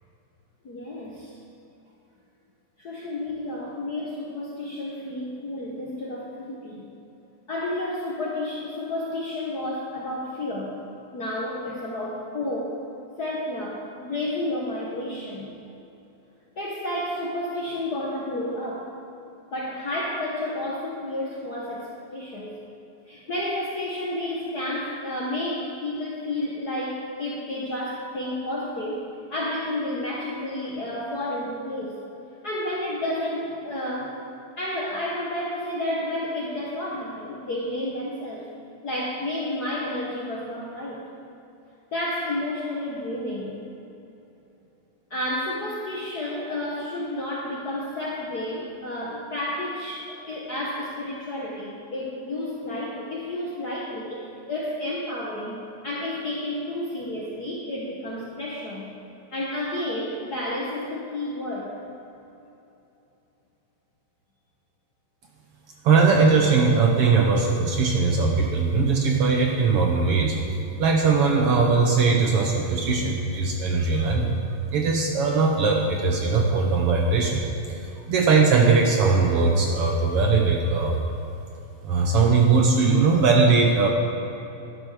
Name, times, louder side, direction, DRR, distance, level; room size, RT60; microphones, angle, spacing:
voice 1, 0.6-1.4 2.8-6.9 7.5-10.8 11.1-12.8 13.2-15.5 16.6-18.9 19.5-22.5 23.1-29.0 29.3-32.0 32.4-34.2 34.6-38.5 38.8-41.0 41.9-43.6 45.1-58.9 59.3-61.7, left 1 dB, 55° left, -4 dB, 1.2 m, -31 dB
voice 2, 65.8-70.4 70.8-74.4 74.7-77.4 77.7-77.8 78.1-81.0 81.8-83.9, right 4 dB, 65° right, 1 dB, 1.6 m, -20 dB
11.5 x 11.0 x 4.8 m, 2.9 s
omnidirectional pair, 3.3 m